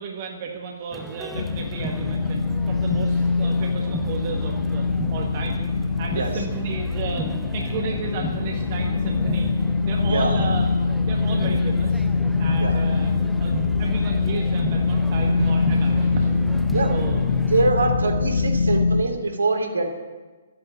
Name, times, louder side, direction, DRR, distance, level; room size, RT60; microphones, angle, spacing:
voice 1, 0.0-4.8 5.1-5.7 6.0-9.5 9.8-10.7 11.0-12.0 12.4-13.1 13.4-16.6 16.9-17.4 17.8-17.9, right 5 dB, 40° right, 1 dB, 1.8 m, -33 dB
sound 1, 0.9-17.7, right 2 dB, ahead, 0.6 m, -38 dB
sound 2, 1.3-19.0, left 4 dB, 60° left, 1.5 m, -23 dB
voice 2, 10.0-10.4 12.6-12.8 16.7-16.9 17.5-19.9, right 3 dB, 75° right, 3 dB, 3.0 m, -24 dB
12.5 x 10.5 x 8.7 m, 1.3 s
figure-of-eight pair, 130°, 0 cm